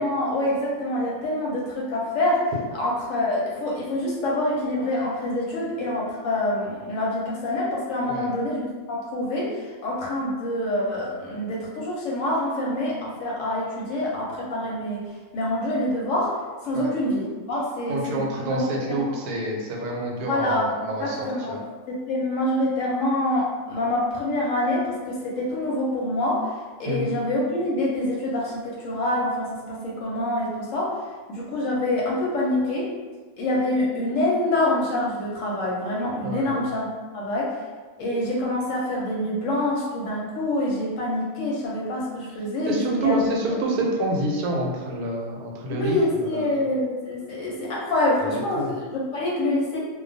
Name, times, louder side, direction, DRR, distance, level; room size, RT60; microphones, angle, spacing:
voice 1, 0.0-2.4 2.7-15.0 15.3-16.3 16.6-19.2 20.3-21.6 21.9-26.5 26.8-31.0 31.3-32.9 33.4-36.8 37.1-37.6 38.0-43.2 45.7-49.8, left 1 dB, 65° left, -5 dB, 0.9 m, -26 dB
voice 2, 17.9-21.2 21.5-21.6 26.9-27.2 36.2-36.7 42.7-46.6 48.2-48.7, right 1 dB, 85° right, -1 dB, 1.1 m, -27 dB
2.3 x 2.2 x 2.5 m, 1.4 s
omnidirectional pair, 1.6 m